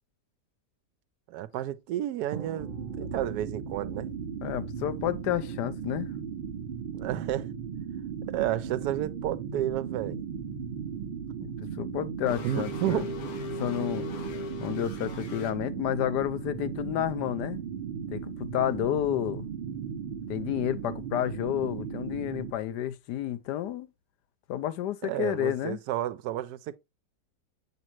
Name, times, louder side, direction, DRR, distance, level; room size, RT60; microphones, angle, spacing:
voice 1, 1.3-2.7 3.0-4.1 6.9-7.5 8.3-10.2 12.4-13.1 25.0-26.8, right 13 dB, 75° right, 1.1 m, -31 dB
Drum, 2.3-4.0, right 7 dB, 50° right, 1.4 m, -43 dB
sound 1, 2.6-22.5, right 7 dB, 35° right, 1.9 m, -37 dB
voice 2, 4.4-6.1 11.4-13.1 13.6-14.0 14.6-17.6 18.1-19.5 20.3-23.9 24.5-25.8, left 12 dB, 85° left, 1.2 m, -30 dB
sound 2, 12.3-15.5, left 3 dB, 60° left, 1.7 m, -39 dB
7.5 x 5.3 x 3.0 m
omnidirectional pair, 1.8 m